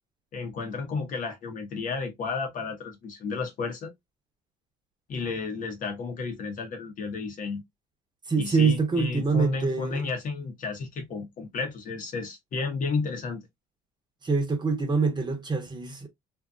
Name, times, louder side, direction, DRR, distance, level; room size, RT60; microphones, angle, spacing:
voice 1, 0.3-3.9 5.1-7.6 8.4-13.4, left 4 dB, 55° left, 1.1 m, -32 dB
voice 2, 8.3-10.0 14.2-16.1, right 4 dB, 25° right, 0.9 m, -25 dB
2.7 x 2.5 x 2.3 m
supercardioid pair, 90°, 16 cm